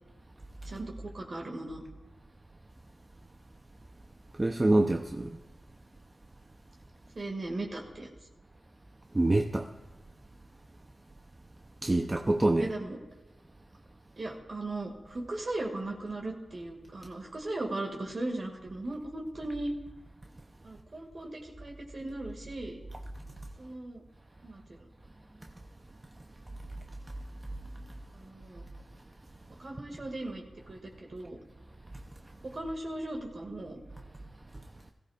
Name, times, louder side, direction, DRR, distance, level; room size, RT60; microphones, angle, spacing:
voice 1, 0.6-1.8 7.1-8.1 12.6-13.0 14.2-19.7 20.6-22.8 23.6-24.0 24.4-24.8 28.1-28.7 29.6-31.4 32.4-33.8, right 2 dB, 55° right, 2.0 m, -37 dB
voice 2, 4.4-5.4 9.1-9.7 11.8-12.7, right 2 dB, 25° right, 0.6 m, -25 dB
17.5 x 14.5 x 2.4 m
cardioid pair, 55°, 0 cm